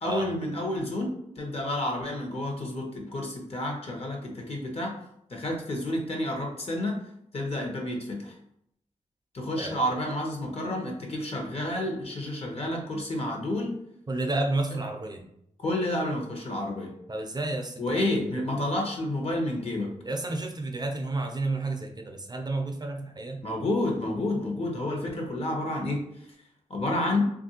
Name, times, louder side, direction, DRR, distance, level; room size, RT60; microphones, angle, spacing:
voice 1, 0.0-4.9 5.3-7.0 7.3-8.3 9.3-13.8 15.6-16.9 17.8-19.9 23.4-26.0 26.7-27.3, left 1 dB, 50° left, 1 dB, 0.9 m, -30 dB
voice 2, 14.1-15.2 17.1-18.1 20.0-23.4, right 2 dB, 30° right, 3 dB, 0.5 m, -31 dB
3.2 x 2.5 x 2.8 m, 0.74 s
cardioid pair, 75°, 13 cm